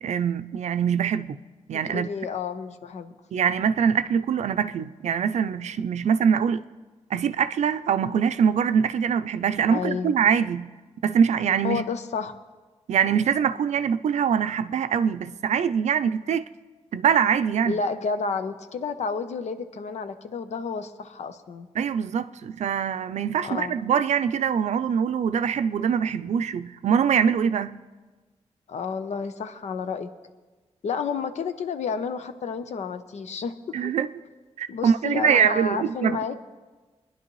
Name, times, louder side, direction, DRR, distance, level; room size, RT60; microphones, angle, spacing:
voice 1, 0.0-1.4 1.7-2.1 3.3-6.6 7.1-10.7 11.0-11.8 12.9-16.4 16.9-17.8 21.8-27.8 33.7-34.1 34.6-36.2, right 7 dB, 90° right, 0.5 m, -23 dB
voice 2, 1.9-3.1 9.7-10.1 11.6-12.3 17.7-21.7 23.4-23.7 28.7-30.1 30.8-33.9 34.7-36.4, left 5 dB, 80° left, 0.8 m, -30 dB
24.0 x 11.0 x 3.1 m
wide cardioid pair, 110°, 11 cm